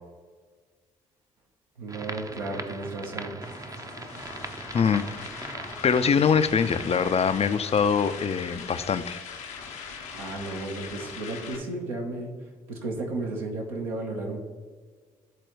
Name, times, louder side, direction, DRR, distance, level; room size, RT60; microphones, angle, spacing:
voice 1, 1.8-3.4 10.1-12.3 12.7-14.4, right 2 dB, 80° right, -1 dB, 1.1 m, -33 dB
sound 1, 1.9-7.1, right 2 dB, 20° right, 0.6 m, -40 dB
sound 2, 3.4-11.6, left 6 dB, 80° left, 0.9 m, -41 dB
voice 2, 5.8-9.2, left 6 dB, 35° left, 12 dB, 0.5 m, -23 dB
11.0 x 4.0 x 3.1 m, 1.5 s
figure-of-eight pair, 40°, 18 cm